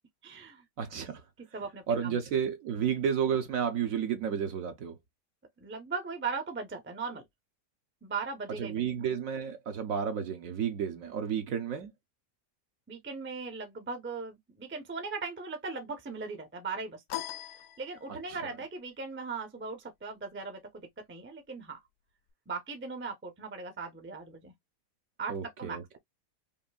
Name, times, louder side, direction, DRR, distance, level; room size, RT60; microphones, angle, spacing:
voice 1, 0.2-0.7 1.4-2.2 5.6-7.2 8.0-8.8 12.9-20.6 21.1-21.8 22.5-24.5 25.2-25.8, right 4 dB, 15° right, 0.4 m, -39 dB
voice 2, 0.8-1.2 1.9-5.0 8.6-11.9 18.3-18.5 25.3-26.0, right 8 dB, 65° right, 0.9 m, -32 dB
sound 1, 17.1-18.5, left 14 dB, 70° left, 1.0 m, -40 dB
5.2 x 2.6 x 2.3 m
omnidirectional pair, 1.8 m